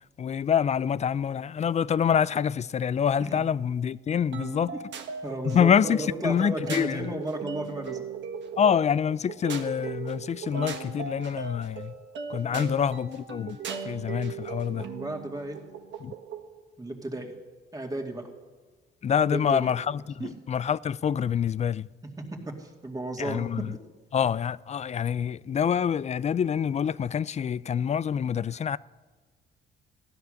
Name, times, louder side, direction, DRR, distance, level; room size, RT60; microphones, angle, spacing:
voice 1, 0.2-4.7 5.5-6.0 6.2-7.1 8.6-12.0 12.3-13.6 13.8-14.9 16.0-16.1 19.0-21.9 23.2-23.7 24.1-28.8, left 8 dB, 35° left, 0.4 m, -26 dB
sound 1, 4.3-16.5, right 6 dB, 65° right, 1.5 m, -38 dB
voice 2, 5.2-8.0 12.5-12.7 14.7-15.6 16.8-17.3 17.7-18.3 19.3-19.7 20.2-20.3 22.2-23.6, right 1 dB, 20° right, 2.3 m, -34 dB
15.5 x 10.5 x 6.5 m
cardioid pair, 90°, 20 cm